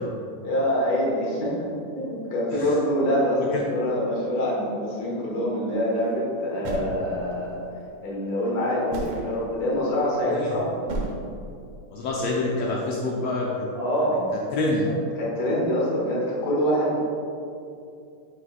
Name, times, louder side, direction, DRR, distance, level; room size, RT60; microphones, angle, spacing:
voice 1, 0.4-1.7 1.9-7.6 8.0-10.6 13.7-14.3 15.2-17.0, equal, 45° left, -5 dB, 1.2 m, -25 dB
footsteps boots gravel dirt quick but separated, 5.8-6.2 6.6-7.5 8.4-8.5 8.9-9.4 10.2-10.5 10.9-11.1, right 2 dB, 60° right, 2.3 m, -33 dB
voice 2, 11.9-13.7 14.1-14.2 14.5-14.8, left 2 dB, 90° left, -4 dB, 1.4 m, -27 dB
9.6 x 4.9 x 2.5 m, 2.5 s
omnidirectional pair, 3.8 m